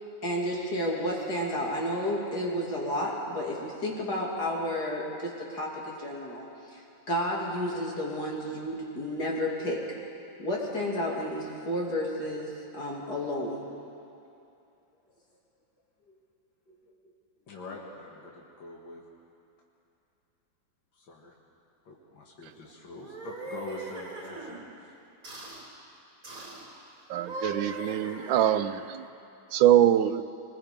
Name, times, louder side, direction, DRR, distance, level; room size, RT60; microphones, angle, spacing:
voice 1, 0.2-6.5 6.7-6.8 7.1-9.8 10.4-13.6, equal, 60° left, -3 dB, 3.4 m, -31 dB
voice 2, 17.5-19.0 20.9-21.4 21.9-24.6, left 3 dB, 90° left, -2 dB, 2.5 m, -44 dB
sound 1, 22.9-24.6 25.2-25.6 26.2-26.7 27.1-28.9, right 2 dB, 45° right, 3.9 m, -40 dB
voice 3, 27.1-29.0 29.5-30.2, right 11 dB, 85° right, 11 dB, 1.4 m, -23 dB
24.0 x 21.0 x 5.2 m, 2.7 s
omnidirectional pair, 2.0 m